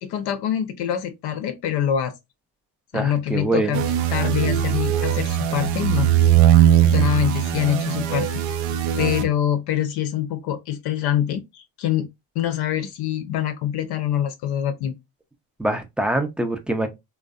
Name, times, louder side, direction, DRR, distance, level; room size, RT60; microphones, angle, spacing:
voice 1, 0.0-2.1 2.9-6.1 6.8-8.3 9.0-12.1 12.4-14.9, left 10 dB, 60° left, 0.5 m, -25 dB
voice 2, 2.9-3.8 15.6-16.9, right 2 dB, 5° right, 0.3 m, -24 dB
sound 1, 3.7-9.2, right 11 dB, 70° right, 0.6 m, -20 dB
2.5 x 2.1 x 2.3 m
supercardioid pair, 75°, 45 cm